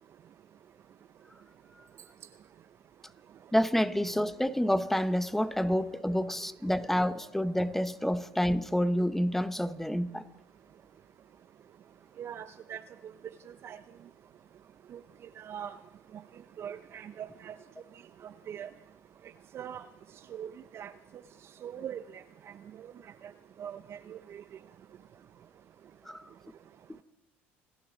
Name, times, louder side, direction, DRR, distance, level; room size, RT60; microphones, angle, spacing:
voice 1, 3.5-10.3 26.1-26.2 26.9-27.0, equal, 5° left, 0.9 m, -28 dB
voice 2, 12.2-12.8 13.6-13.8 14.9-15.0 15.4-15.8 16.1-16.2 16.6-17.6 18.2-18.7 19.5-19.9 20.3-20.9 21.6-22.9 23.2-23.3 23.6-24.4, right 9 dB, 45° right, 0.6 m, -42 dB
27.5 x 10.5 x 3.9 m
hypercardioid pair, 75°, 6 cm